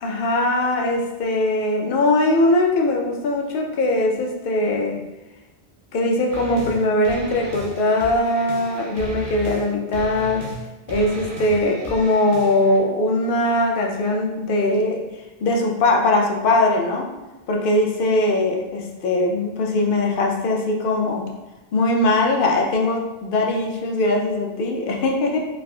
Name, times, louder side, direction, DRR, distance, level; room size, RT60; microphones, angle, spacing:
voice 1, 0.0-5.0 5.9-10.5 10.9-15.0 15.4-17.1 17.5-21.3 21.7-25.4, left 2 dB, 65° left, 0 dB, 0.7 m, -21 dB
sound 1, 6.3-6.8 7.0-9.6 9.9-10.6 10.9-12.8, equal, 60° right, 0.8 m, -35 dB
3.5 x 2.4 x 2.2 m, 1.0 s
omnidirectional pair, 1.1 m